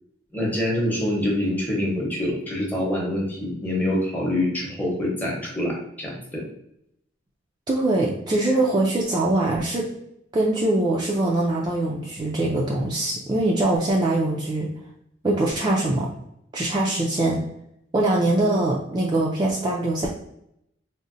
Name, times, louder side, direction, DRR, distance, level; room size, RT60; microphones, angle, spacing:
voice 1, 0.3-6.4, left 1 dB, 10° left, -3 dB, 0.8 m, -25 dB
voice 2, 7.7-9.9 10.3-14.7 15.2-16.1 16.5-17.4 17.9-20.1, right 2 dB, 20° right, -3 dB, 0.3 m, -22 dB
3.7 x 2.0 x 2.5 m, 0.75 s
head